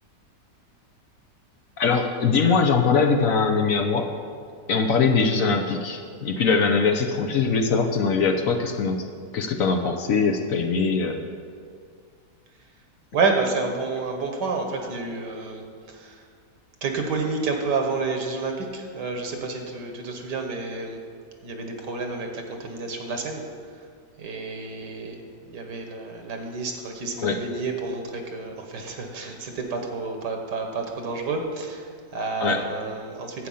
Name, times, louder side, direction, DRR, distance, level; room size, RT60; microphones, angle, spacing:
voice 1, 1.8-4.1 4.7-9.1 9.3-11.3 27.2-27.4 32.4-32.6, left 5 dB, 60° left, 3 dB, 1.0 m, -22 dB
voice 2, 13.1-16.2 16.8-21.0 21.4-23.5 23.8-23.9 24.2-25.2 25.5-33.5, right 4 dB, 75° right, 4 dB, 1.9 m, -29 dB
11.0 x 8.5 x 5.6 m, 2.1 s
omnidirectional pair, 1.8 m